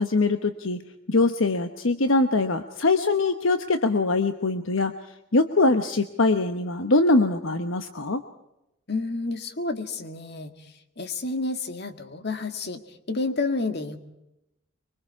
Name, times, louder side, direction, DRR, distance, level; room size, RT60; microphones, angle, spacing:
voice 1, 0.0-4.9 5.3-8.2, left 2 dB, 70° left, 8 dB, 1.1 m, -23 dB
voice 2, 8.9-10.5 11.0-12.8 13.1-14.0, left 3 dB, 55° left, 8 dB, 1.9 m, -30 dB
25.0 x 24.0 x 4.8 m, 0.88 s
head